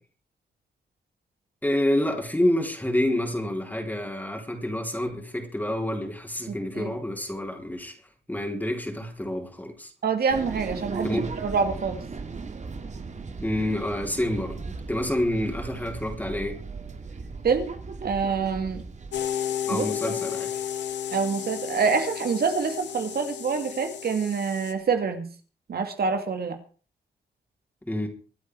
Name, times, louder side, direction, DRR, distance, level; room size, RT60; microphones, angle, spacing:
voice 1, 1.6-7.9 8.3-9.9 11.0-11.3 13.4-16.6 19.7-20.6 27.9-28.1, left 1 dB, 10° left, 4.1 m, -28 dB
voice 2, 6.5-6.9 10.0-12.0 17.4-17.7 18.0-18.8 19.7-19.9 21.1-25.3 25.7-26.6, right 5 dB, 60° right, 2.6 m, -26 dB
sound 1, 10.3-19.2, right 4 dB, 40° right, 2.7 m, -37 dB
sound 2, 19.1-24.7, left 10 dB, 85° left, 2.2 m, -32 dB
24.5 x 8.7 x 4.8 m
cardioid pair, 85°, 18 cm